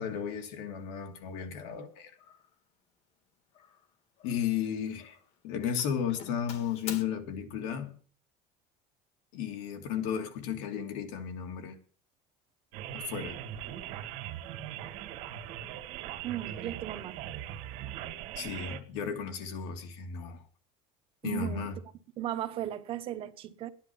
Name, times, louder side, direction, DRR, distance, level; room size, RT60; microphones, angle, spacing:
voice 1, 0.0-2.1 4.2-5.1 5.4-8.0 9.3-11.8 12.9-13.4 18.4-20.4 21.2-21.8, left 8 dB, 90° left, 2.7 m, -34 dB
Doorbell, 0.8-1.0 1.5-1.9 2.2-2.6 3.5-4.6 4.9-5.4 5.8-7.0, left 7 dB, 45° left, 1.7 m, -46 dB
sound 1, 12.7-18.8, right 11 dB, 65° right, 2.0 m, -40 dB
voice 2, 16.2-17.2 21.2-21.7 22.2-23.7, right 12 dB, 35° right, 1.1 m, -36 dB
13.0 x 10.5 x 6.0 m
cardioid pair, 175°, 15 cm